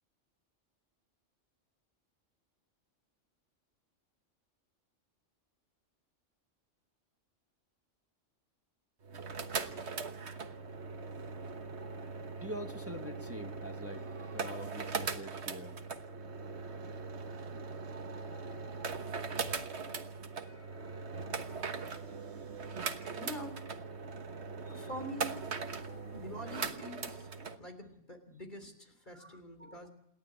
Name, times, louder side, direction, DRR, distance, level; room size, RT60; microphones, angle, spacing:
sound 1, 9.0-27.6, right 5 dB, 60° right, 1.5 m, -40 dB
voice 1, 11.8-15.8 17.9-19.6 20.4-21.5 24.0-24.1 24.7-24.9 25.8-26.2 29.1-29.9, equal, 10° right, 6 dB, 1.3 m, -48 dB
voice 2, 23.1-23.6 24.7-25.4 26.1-29.9, equal, 40° left, 6 dB, 3.6 m, -45 dB
28.0 x 11.5 x 8.7 m, 0.82 s
omnidirectional pair, 1.3 m